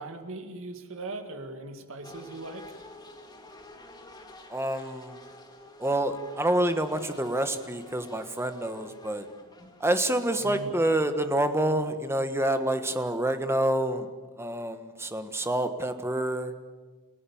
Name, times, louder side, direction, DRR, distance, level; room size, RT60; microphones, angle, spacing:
voice 1, 0.0-2.8 10.4-10.7, right 2 dB, 65° right, 6 dB, 2.2 m, -39 dB
sound 1, 2.0-11.5, left 1 dB, 20° left, 2.2 m, -50 dB
voice 2, 4.5-5.2 5.8-9.3 9.8-14.1 14.4-16.5, right 1 dB, 10° right, 8 dB, 1.4 m, -27 dB
29.5 x 16.5 x 7.2 m, 1.4 s
head